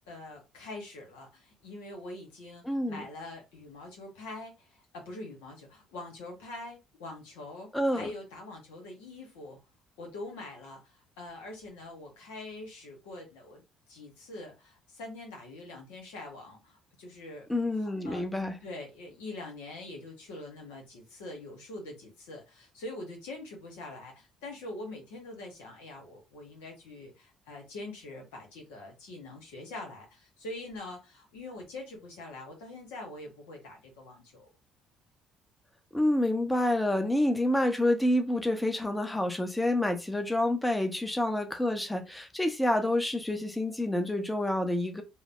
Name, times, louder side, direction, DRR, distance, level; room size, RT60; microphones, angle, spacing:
voice 1, 0.0-9.6 10.0-13.6 13.9-17.5 17.8-18.3 18.6-34.5, left 2 dB, 90° left, 1.0 m, -44 dB
voice 2, 2.6-3.1 7.7-8.1 17.5-18.6 35.9-45.0, left 1 dB, 10° left, 0.6 m, -28 dB
2.9 x 2.0 x 2.5 m
supercardioid pair, 65°, 0 cm